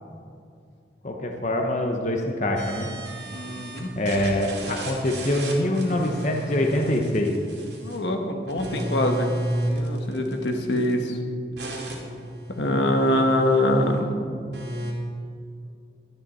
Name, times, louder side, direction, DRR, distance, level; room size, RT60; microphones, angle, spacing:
voice 1, 1.0-2.9 3.9-7.3, left 1 dB, 45° left, 2 dB, 1.0 m, -24 dB
sound 1, 2.6-3.8 4.1-8.1 8.5-10.9 11.6-14.0 14.5-14.9, right 1 dB, 75° right, 2.3 m, -33 dB
voice 2, 3.3-3.9 7.8-9.3 9.6-11.2 12.5-14.2, left 1 dB, 85° left, 3 dB, 1.3 m, -24 dB
12.0 x 10.5 x 4.3 m, 2.3 s
head